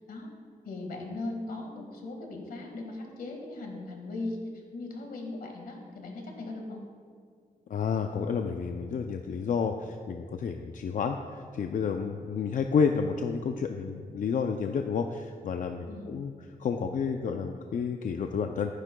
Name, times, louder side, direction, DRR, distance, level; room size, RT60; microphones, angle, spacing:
voice 1, 0.6-6.8 15.9-16.1, left 2 dB, 85° left, 1 dB, 1.7 m, -38 dB
voice 2, 7.7-16.3 16.6-18.8, left 6 dB, 60° left, 5 dB, 0.5 m, -30 dB
15.0 x 9.9 x 2.2 m, 2.1 s
wide cardioid pair, 100°, 15 cm